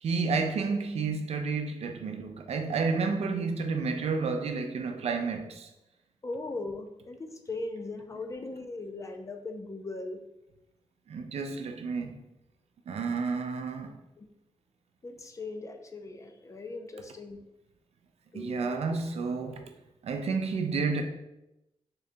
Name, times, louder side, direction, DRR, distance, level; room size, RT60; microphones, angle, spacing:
voice 1, 0.0-5.7 11.1-12.2 12.9-14.0 18.3-19.6 20.0-21.0, right 4 dB, 70° right, 0.5 m, -30 dB
voice 2, 6.2-10.2 14.2-14.3 15.0-17.4 18.3-19.0 19.4-19.5, left 2 dB, 30° left, 0.4 m, -39 dB
3.8 x 2.7 x 3.3 m
wide cardioid pair, 105°, 11 cm